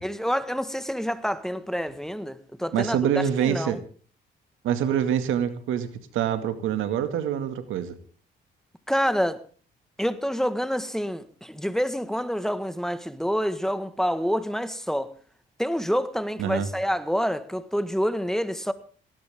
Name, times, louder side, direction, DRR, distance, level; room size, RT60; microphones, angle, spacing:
voice 1, 0.0-3.0 3.4-3.8 8.9-9.4 10.0-15.1 15.6-18.7, equal, ahead, 1.6 m, -27 dB
voice 2, 2.7-3.8 4.6-5.9 6.1-8.0 16.4-16.7, right 9 dB, 85° right, 2.2 m, -25 dB
18.5 x 18.0 x 3.7 m
cardioid pair, 90°, 20 cm